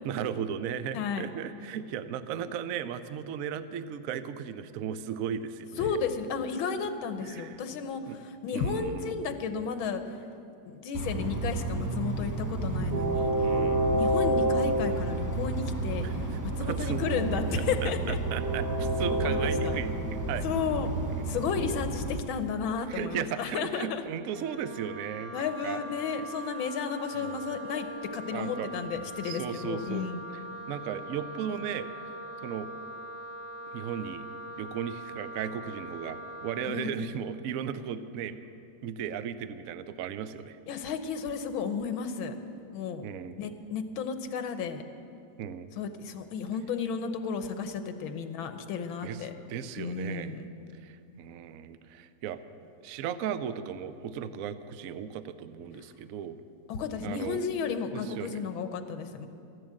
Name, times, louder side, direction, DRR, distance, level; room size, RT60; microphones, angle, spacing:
voice 1, 0.0-6.0 7.2-7.6 8.1-8.2 8.5-9.1 13.3-14.0 16.0-17.0 17.8-20.5 22.9-25.8 27.2-27.4 28.3-28.7 29.2-30.1 30.7-31.9 32.4-32.7 33.7-34.3 34.6-38.4 38.8-40.6 43.0-43.4 45.4-45.7 49.0-49.2 49.5-50.4 50.7-52.4 52.8-56.4 57.0-57.4 57.9-58.4, right 8 dB, 85° right, 12 dB, 0.7 m, -36 dB
voice 2, 0.9-1.3 5.8-10.3 10.7-13.3 13.9-18.2 19.1-19.8 20.4-20.9 21.3-24.0 25.3-27.9 28.1-30.2 36.7-37.0 40.7-42.4 42.7-43.0 43.4-44.8 45.8-49.3 49.8-50.5 56.7-59.3, left 6 dB, 85° left, 8 dB, 1.7 m, -33 dB
Train, 10.9-22.2, right 2 dB, 15° right, 0.7 m, -29 dB
Wind instrument woodwind instrument, 24.3-36.7, right 2 dB, 20° left, 1.3 m, -42 dB
14.5 x 11.0 x 7.6 m, 2.6 s
omnidirectional pair, 2.1 m